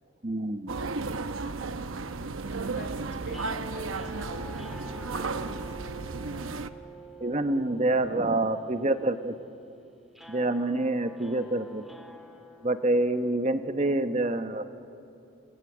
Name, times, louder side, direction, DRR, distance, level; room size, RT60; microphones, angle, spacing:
voice 1, 0.2-0.7 7.2-9.3 10.3-11.8 12.6-14.6, right 2 dB, 35° right, 9 dB, 0.9 m, -27 dB
sound 1, 0.7-6.7, right 3 dB, 80° right, 0.9 m, -34 dB
voice 2, 2.5-5.8 7.3-7.4 7.9-8.2 8.6-8.9, equal, 50° left, 4 dB, 3.4 m, -49 dB
sound 2, 3.3-13.5, right 1 dB, ahead, 2.7 m, -48 dB
29.5 x 20.0 x 8.6 m, 2.7 s
head